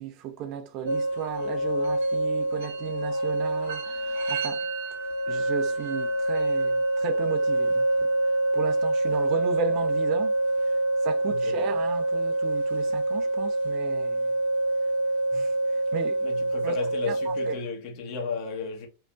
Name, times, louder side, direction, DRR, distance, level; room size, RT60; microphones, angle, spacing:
voice 1, 0.0-4.7 5.3-10.4 10.6-14.3 15.3-16.2 16.6-16.8 17.0-17.6, right 8 dB, 40° right, 0.5 m, -35 dB
sound 1, 0.9-17.6, right 1 dB, 65° right, 0.9 m, -26 dB
voice 2, 11.2-11.7 16.2-18.9, left 5 dB, 40° left, 1.2 m, -34 dB
4.5 x 2.2 x 2.5 m
figure-of-eight pair, 90°, 0 cm